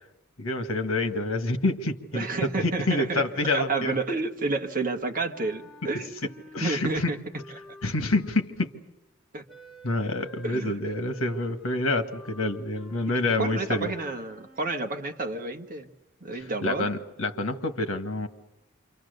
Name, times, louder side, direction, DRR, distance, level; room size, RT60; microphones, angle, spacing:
voice 1, 0.4-4.0 6.5-7.1 7.8-8.7 9.8-13.9 16.3-18.3, left 2 dB, 80° left, 7 dB, 1.8 m, -27 dB
voice 2, 2.1-3.2 3.5-6.1 6.6-7.2 9.3-9.4 10.4-10.8 13.1-15.9 16.2-16.9, right 3 dB, 40° right, 5 dB, 1.7 m, -30 dB
Wind instrument woodwind instrument, 4.6-8.7 9.5-14.9, equal, ahead, 3.6 m, -51 dB
28.0 x 25.0 x 6.7 m, 0.90 s
head